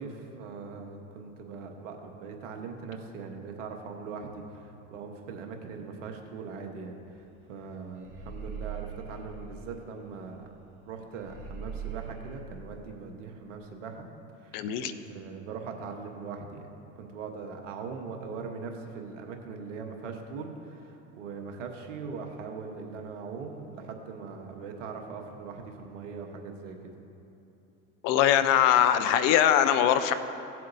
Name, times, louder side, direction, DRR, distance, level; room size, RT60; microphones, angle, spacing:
voice 1, 0.0-7.0 7.5-10.5 10.8-14.1 14.4-26.8, right 5 dB, 85° right, 3 dB, 1.3 m, -41 dB
sound 1, 7.1-7.3 7.6-10.4 10.7-10.8 11.1-12.4, right 6 dB, 60° right, 2.1 m, -41 dB
voice 2, 14.5-14.9 28.0-30.1, left 10 dB, 60° left, 11 dB, 0.7 m, -22 dB
17.0 x 7.6 x 2.7 m, 2.9 s
hypercardioid pair, 80°, 36 cm